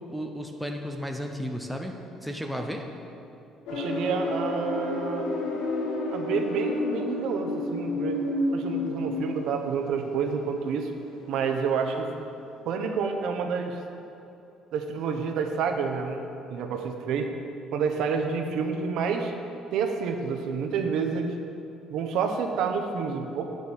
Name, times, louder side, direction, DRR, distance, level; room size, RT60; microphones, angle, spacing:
voice 1, 0.1-2.9, equal, ahead, 3 dB, 0.6 m, -34 dB
sound 1, 3.7-11.5 11.8-12.1, left 2 dB, 85° left, 1.6 m, -30 dB
voice 2, 3.7-5.3 6.1-8.2 8.5-10.9 11.3-12.1 12.6-13.8 14.7-16.2 16.5-17.3 17.7-19.3 19.7-21.4 21.9-23.5, right 6 dB, 60° right, 5 dB, 0.9 m, -29 dB
9.4 x 6.3 x 7.1 m, 2.8 s
cardioid pair, 170°, 0 cm